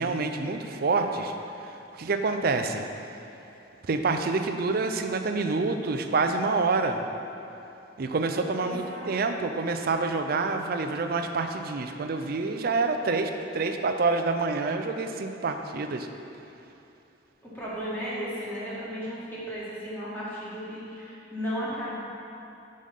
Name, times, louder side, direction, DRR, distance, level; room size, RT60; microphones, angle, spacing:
voice 1, 0.0-1.3 1.6-1.7 2.0-2.8 3.9-7.1 8.0-16.1, right 3 dB, 55° right, 6 dB, 0.5 m, -27 dB
voice 2, 8.6-9.1 17.4-22.0, equal, 10° left, -9 dB, 1.9 m, -35 dB
6.4 x 5.5 x 5.4 m, 2.8 s
head